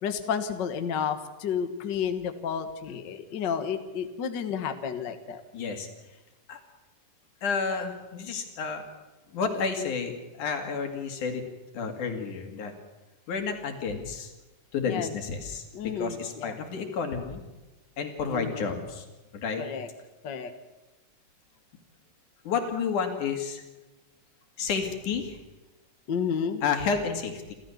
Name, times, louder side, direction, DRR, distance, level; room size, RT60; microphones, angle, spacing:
voice 1, 0.0-5.4 14.9-15.1 15.7-16.6 18.3-18.6 19.6-19.9 20.2-20.5 26.1-26.6, left 7 dB, 50° left, 8 dB, 1.4 m, -31 dB
voice 2, 5.5-5.9 6.5-6.6 7.4-8.8 9.3-11.4 11.7-12.7 13.3-14.3 14.7-17.4 18.0-19.1 19.3-19.6 22.5-23.6 24.6-25.4 26.6-27.5, left 5 dB, 70° left, 5 dB, 3.8 m, -31 dB
29.0 x 13.5 x 7.1 m, 1.2 s
omnidirectional pair, 3.7 m